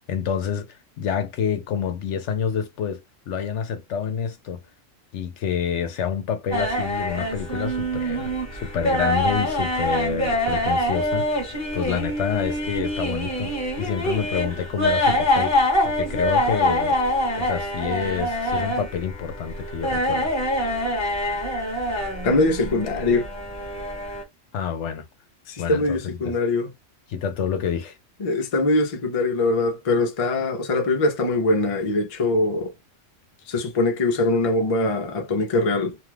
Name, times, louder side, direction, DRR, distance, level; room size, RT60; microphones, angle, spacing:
voice 1, 0.1-4.6 5.1-8.3 8.6-11.4 11.7-17.0 17.4-20.3 24.5-25.1 25.6-26.0 26.2-26.4 27.1-28.0, left 7 dB, 70° left, 0.9 m, -28 dB
sound 1, 6.5-24.2, left 1 dB, 15° left, 1.0 m, -25 dB
voice 2, 22.2-23.3 25.5-26.7 28.2-32.7 33.5-36.0, left 2 dB, 40° left, 0.5 m, -22 dB
2.7 x 2.3 x 3.2 m
omnidirectional pair, 1.3 m